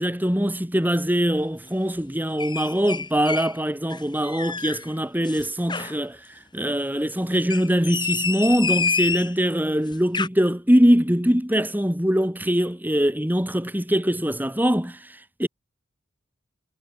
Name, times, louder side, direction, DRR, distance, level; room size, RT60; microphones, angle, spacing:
voice 1, 0.0-6.2 6.5-15.5, equal, 10° right, 2.9 m, -22 dB
sound 1, 2.4-3.5 3.9-4.8 5.2-6.0 7.4-9.4 9.9-10.3, left 5 dB, 25° left, 3.3 m, -28 dB
head